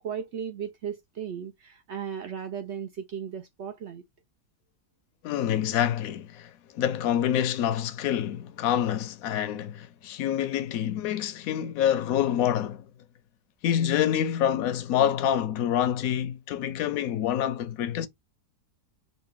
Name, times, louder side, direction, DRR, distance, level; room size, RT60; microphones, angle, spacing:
voice 1, 0.0-4.0, right 8 dB, 75° right, 0.6 m, -36 dB
voice 2, 5.2-6.5 6.7-12.9 13.6-18.1, left 10 dB, 70° left, 0.9 m, -26 dB
4.1 x 2.2 x 3.5 m
omnidirectional pair, 1.8 m